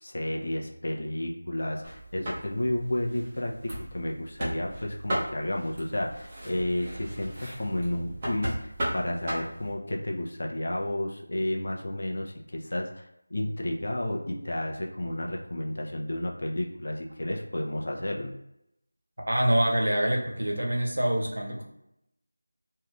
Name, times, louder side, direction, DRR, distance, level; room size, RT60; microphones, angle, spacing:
voice 1, 0.0-18.3, left 1 dB, 55° left, 0 dB, 0.6 m, -32 dB
sound 1, 1.8-9.7, right 1 dB, 20° right, 0.8 m, -36 dB
voice 2, 19.2-21.6, right 1 dB, 85° right, 0 dB, 0.9 m, -25 dB
2.7 x 2.4 x 3.2 m, 0.82 s
figure-of-eight pair, 175°, 0 cm